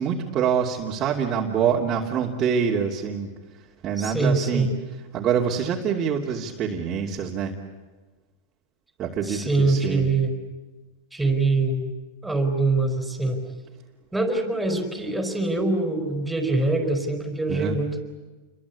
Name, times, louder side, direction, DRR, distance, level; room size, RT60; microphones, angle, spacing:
voice 1, 0.0-3.3 3.8-4.7 5.1-7.5 9.0-10.1 17.5-17.8, right 7 dB, 30° right, -3 dB, 2.8 m, -25 dB
voice 2, 4.0-4.7 9.2-10.3 11.1-11.9 12.2-13.4 14.1-18.0, right 3 dB, 5° right, 5 dB, 4.8 m, -24 dB
29.5 x 23.0 x 8.5 m, 1.3 s
supercardioid pair, 140°, 0 cm